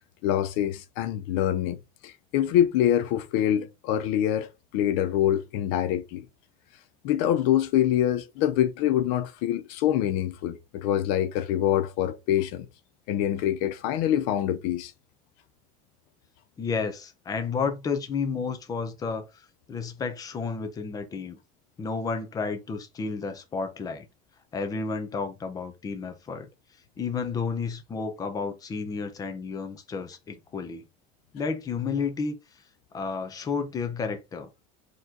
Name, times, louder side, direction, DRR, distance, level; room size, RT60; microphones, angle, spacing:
voice 1, 0.2-1.8 2.0-6.3 7.0-12.7 13.1-14.9, left 11 dB, 75° left, 0.6 m, -25 dB
voice 2, 16.6-19.3 19.7-21.4 21.8-24.1 24.5-26.5 27.0-30.9 31.3-32.4 32.9-34.5, left 5 dB, 20° left, 0.7 m, -31 dB
4.6 x 3.1 x 3.7 m
cardioid pair, 170°, 19 cm